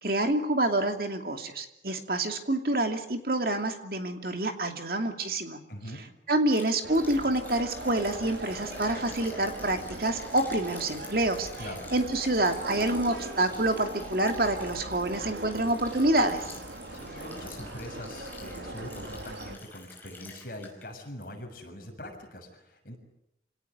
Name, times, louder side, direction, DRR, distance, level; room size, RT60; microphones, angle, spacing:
voice 1, 0.0-5.6 6.3-11.5 11.9-16.5, right 1 dB, 55° right, 5 dB, 2.7 m, -27 dB
voice 2, 5.7-6.0 11.6-11.8 16.9-23.0, left 1 dB, 50° left, 2 dB, 6.9 m, -42 dB
Liquid, 6.5-20.9 21.2-21.3 21.8-21.9, left 2 dB, 10° left, 5.0 m, -47 dB
sound 1, 6.8-19.6, right 1 dB, 80° right, 3.3 m, -41 dB
27.5 x 18.0 x 9.5 m, 0.81 s
head